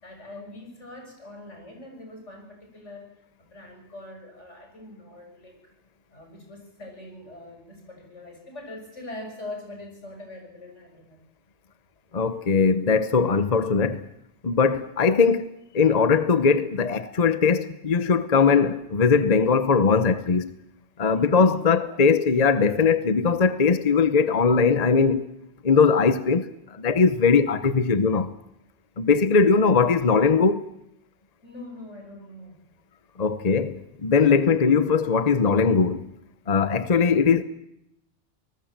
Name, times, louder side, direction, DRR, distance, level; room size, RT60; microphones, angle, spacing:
voice 1, 0.0-5.7 6.1-11.2 21.0-22.0 31.4-32.6, left 1 dB, 85° left, 6.7 m, -43 dB
voice 2, 12.1-14.0 14.4-15.5 15.7-20.5 21.0-25.3 25.6-26.5 26.8-28.3 29.0-30.7 33.2-36.1 36.5-37.4, left 5 dB, 35° left, 1.0 m, -20 dB
24.5 x 19.5 x 7.5 m
omnidirectional pair, 1.2 m